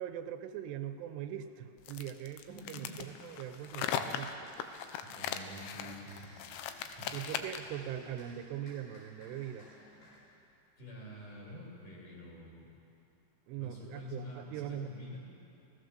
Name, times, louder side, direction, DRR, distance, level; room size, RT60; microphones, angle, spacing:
voice 1, 0.0-4.3 7.1-9.7 13.5-14.9, right 10 dB, 75° right, 9 dB, 2.7 m, -41 dB
sound 1, 1.4-1.5 2.1-10.3, left 1 dB, 70° left, 8.4 m, -58 dB
sound 2, 1.8-7.8, left 9 dB, 90° left, 3.4 m, -39 dB
voice 2, 2.4-3.0 5.1-7.1 10.8-12.7 13.5-15.2, left 1 dB, 45° left, -4 dB, 7.3 m, -48 dB
29.5 x 18.0 x 6.8 m, 2.7 s
omnidirectional pair, 5.2 m